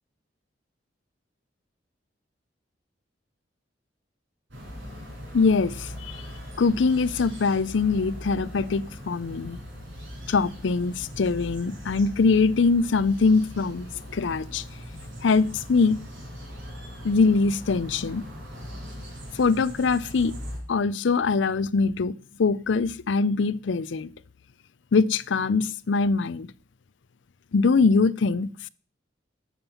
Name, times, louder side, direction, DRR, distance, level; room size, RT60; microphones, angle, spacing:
sound 1, 4.5-20.6, equal, 85° right, 6.4 m, -40 dB
voice 1, 5.3-6.2 6.6-9.6 10.3-14.6 15.2-16.0 17.0-18.3 19.3-20.3 20.7-24.1 24.9-26.5 27.5-28.7, left 4 dB, 85° left, 0.5 m, -23 dB
12.5 x 7.4 x 5.7 m
head